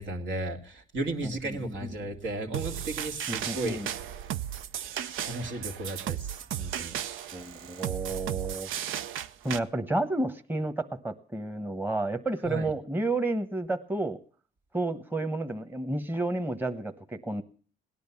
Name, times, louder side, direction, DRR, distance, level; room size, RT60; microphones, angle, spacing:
voice 1, 0.0-3.8 4.8-7.0 12.4-12.7, right 2 dB, 70° right, 3 dB, 2.3 m, -35 dB
voice 2, 1.2-1.9 3.3-3.9 7.3-8.7 9.4-14.2 14.7-17.4, right 2 dB, 10° right, 7 dB, 1.1 m, -31 dB
sound 1, 2.5-9.6, right 10 dB, 90° right, 0.7 m, -35 dB
17.5 x 10.5 x 7.1 m, 0.42 s
cardioid pair, 90°, 20 cm